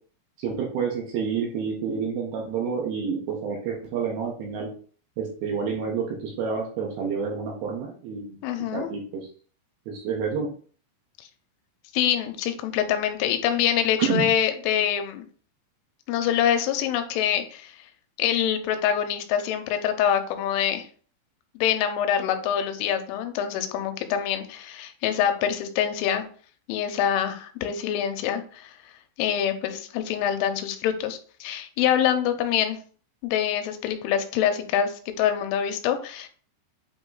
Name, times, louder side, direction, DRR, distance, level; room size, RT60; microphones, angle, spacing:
voice 1, 0.4-4.7 5.2-8.4 8.7-9.2 9.9-10.5 14.0-14.3, right 6 dB, 70° right, -1 dB, 2.6 m, -29 dB
voice 2, 8.4-8.9 11.9-15.3 16.1-17.7 18.2-20.9 21.6-26.3 26.7-28.8 29.2-32.8 33.2-36.3, left 9 dB, 85° left, 7 dB, 3.2 m, -25 dB
8.5 x 3.0 x 3.9 m, 0.43 s
omnidirectional pair, 5.5 m